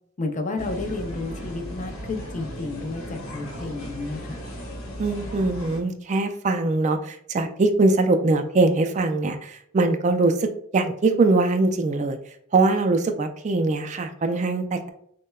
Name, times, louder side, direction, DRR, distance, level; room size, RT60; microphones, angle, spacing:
voice 1, 0.2-4.4, left 3 dB, 35° left, 5 dB, 0.5 m, -31 dB
sound 1, 0.6-5.8, equal, 85° left, 1.1 m, -36 dB
voice 2, 5.0-12.2 12.5-14.9, right 3 dB, 35° right, 7 dB, 0.4 m, -22 dB
6.3 x 2.1 x 2.3 m, 0.70 s
head